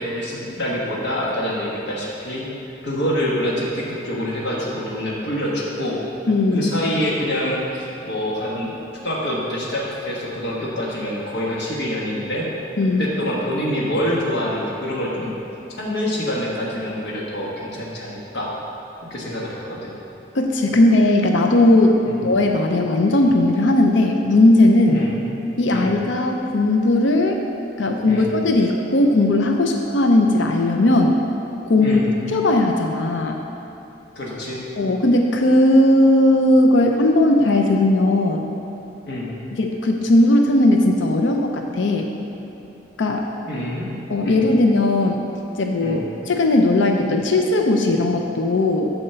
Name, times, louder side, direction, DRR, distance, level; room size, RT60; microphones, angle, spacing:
voice 1, 0.0-2.5 2.8-6.0 6.5-8.8 9.0-12.5 13.0-15.3 15.8-18.5 19.1-19.9 22.0-22.2 24.9-25.2 25.7-25.9 28.0-28.3 31.8-32.0 34.1-34.6 39.1-39.3 43.5-43.9 44.2-44.4 45.8-46.0, equal, 65° left, -5 dB, 1.4 m, -26 dB
voice 2, 6.3-6.7 12.8-13.1 20.3-25.0 25.6-27.4 27.8-31.2 31.7-32.0 32.3-33.4 34.8-38.5 39.5-42.1 43.0-43.3 44.1-45.2 45.6-48.9, left 1 dB, 80° left, 3 dB, 0.6 m, -17 dB
8.8 x 4.3 x 6.7 m, 3.0 s
head